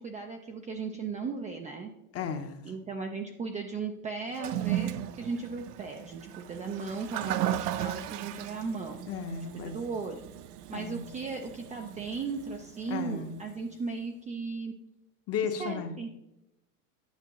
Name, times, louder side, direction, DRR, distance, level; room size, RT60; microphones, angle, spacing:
voice 1, 0.0-1.9 2.6-9.0 9.5-10.2 10.7-14.7 15.6-16.1, right 4 dB, 15° right, 3 dB, 0.4 m, -36 dB
voice 2, 2.1-2.6 9.1-9.7 10.7-11.1 12.9-13.3 15.3-15.9, left 6 dB, 30° left, 8 dB, 0.8 m, -34 dB
Toilet flush, 4.3-13.6, right 12 dB, 85° right, 0.6 m, -36 dB
9.3 x 5.8 x 3.0 m, 0.88 s
supercardioid pair, 120°, 46 cm